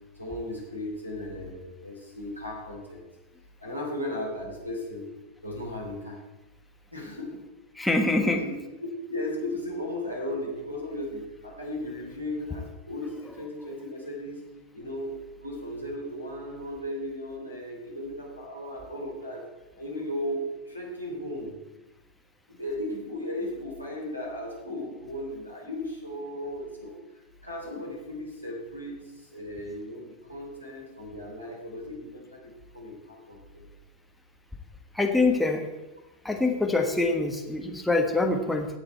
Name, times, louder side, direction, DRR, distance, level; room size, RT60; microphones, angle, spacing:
voice 1, 0.1-3.1 3.6-5.1 5.4-6.2 6.9-7.4 8.1-8.5 9.0-14.4 14.7-19.4 19.8-21.6 22.5-27.0 27.4-33.6, left 1 dB, 90° left, -2 dB, 3.1 m, -36 dB
voice 2, 7.8-8.4 34.9-35.6 36.2-38.7, left 2 dB, 5° left, 2 dB, 1.4 m, -24 dB
17.5 x 6.8 x 4.5 m, 1.0 s
figure-of-eight pair, 90°, 0 cm